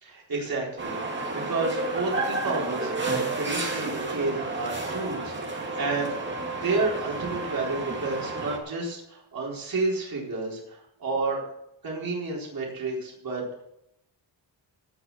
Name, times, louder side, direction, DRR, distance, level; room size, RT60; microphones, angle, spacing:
voice 1, 0.0-6.2 6.6-11.5 11.8-13.6, right 3 dB, 50° right, -3 dB, 4.2 m, -31 dB
sound 1, 0.8-8.6, right 2 dB, 25° right, 2.2 m, -31 dB
17.0 x 6.1 x 7.0 m, 0.79 s
wide cardioid pair, 180°, 46 cm